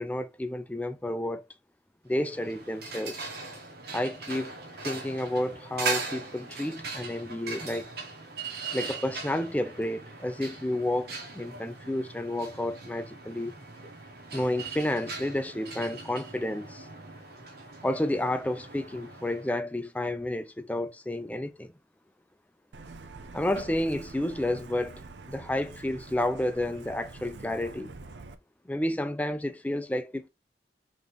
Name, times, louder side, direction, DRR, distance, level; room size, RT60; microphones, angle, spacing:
voice 1, 0.0-1.4 2.0-3.3 3.9-4.5 4.8-7.9 8.7-13.5 14.3-16.9 17.8-21.7 23.3-27.9 28.7-30.3, left 1 dB, 10° left, 0.4 m, -31 dB
sound 1, 2.1-19.6, right 4 dB, 60° right, 1.1 m, -40 dB
Truck, 22.7-28.3, right 3 dB, 80° right, 0.6 m, -45 dB
3.8 x 3.1 x 3.4 m
head